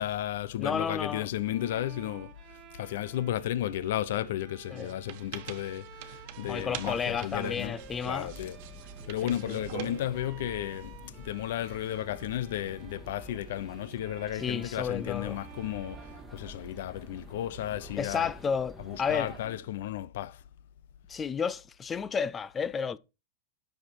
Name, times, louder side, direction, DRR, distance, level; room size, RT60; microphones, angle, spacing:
voice 1, 0.0-7.8 8.0-8.6 9.1-18.3 18.8-20.4, left 13 dB, 70° left, 0.7 m, -34 dB
voice 2, 0.6-1.3 4.7-4.9 6.4-8.3 9.2-9.6 14.4-15.4 18.0-19.3 21.1-23.0, left 6 dB, 15° left, 0.5 m, -32 dB
Bowed string instrument, 1.3-17.1, right 9 dB, 35° right, 1.7 m, -52 dB
wir schreiben auf die tafel, 4.8-11.1, right 12 dB, 50° right, 1.2 m, -45 dB
sound 1, 6.4-19.5, right 2 dB, ahead, 2.1 m, -49 dB
10.5 x 6.7 x 4.6 m
supercardioid pair, 150°, 0 cm